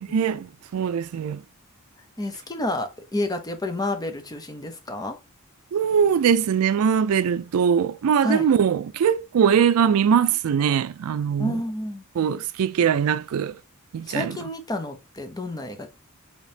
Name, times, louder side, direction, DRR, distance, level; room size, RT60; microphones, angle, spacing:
voice 1, 0.1-1.4 5.7-11.6 12.2-13.5 13.9-14.3, right 7 dB, 75° right, 0.4 m, -21 dB
voice 2, 2.2-5.2 8.2-8.5 11.4-12.0 14.1-15.9, left 1 dB, 20° left, 0.7 m, -30 dB
5.1 x 2.9 x 2.7 m
head